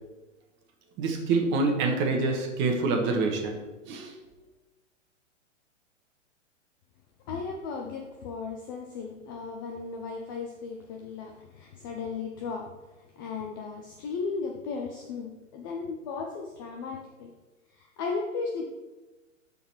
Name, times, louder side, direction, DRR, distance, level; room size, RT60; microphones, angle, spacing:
voice 1, 1.0-3.6 3.8-4.1, right 3 dB, 30° right, 3 dB, 1.4 m, -26 dB
voice 2, 7.3-12.9 13.2-17.3 17.7-18.8, left 4 dB, 20° left, 2 dB, 0.3 m, -36 dB
11.5 x 4.1 x 4.6 m, 1.1 s
hypercardioid pair, 130°, 38 cm